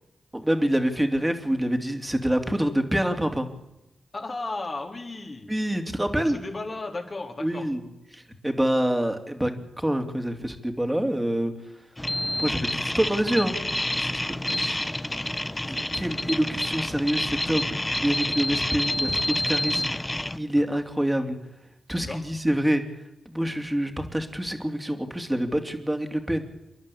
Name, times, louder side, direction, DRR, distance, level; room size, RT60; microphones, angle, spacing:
voice 1, 0.3-3.5 5.5-6.4 7.4-7.9 8.1-9.5 9.8-11.5 12.4-13.6 14.0-14.8 15.6-21.4 21.9-22.8 23.2-26.4, right 1 dB, 10° right, 6 dB, 3.1 m, -26 dB
voice 2, 4.1-5.5 6.2-7.7 14.3-14.6 22.1-22.2, left 2 dB, 45° left, 2 dB, 4.2 m, -35 dB
sound 1, 12.0-20.4, left 1 dB, 15° left, 1.1 m, -28 dB
28.5 x 11.0 x 8.6 m, 0.88 s
supercardioid pair, 40°, 0 cm